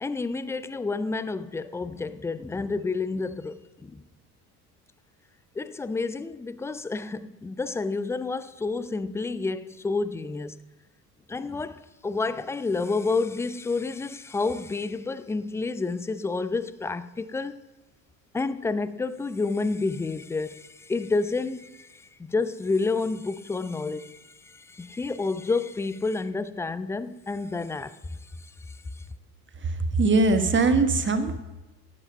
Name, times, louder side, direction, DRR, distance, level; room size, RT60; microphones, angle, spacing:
voice 1, 0.0-4.0 5.6-10.6 11.3-17.6 18.3-28.2 28.7-29.0, left 3 dB, 5° left, 0.4 m, -30 dB
voice 2, 30.0-31.4, right 3 dB, 25° right, 1.4 m, -21 dB
15.5 x 7.9 x 5.4 m
figure-of-eight pair, 60°, 47 cm